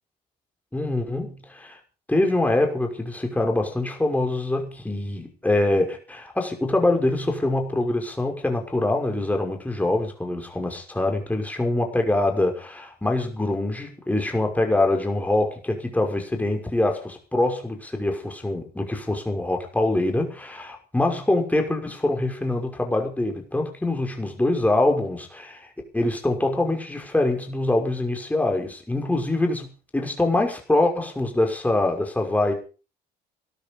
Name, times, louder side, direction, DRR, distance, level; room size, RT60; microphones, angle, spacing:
voice 1, 0.7-1.8 2.1-25.7 25.9-29.7 29.9-32.5, left 2 dB, 10° left, 3 dB, 5.9 m, -24 dB
18.5 x 12.5 x 5.5 m, 0.36 s
cardioid pair, 110°, 17 cm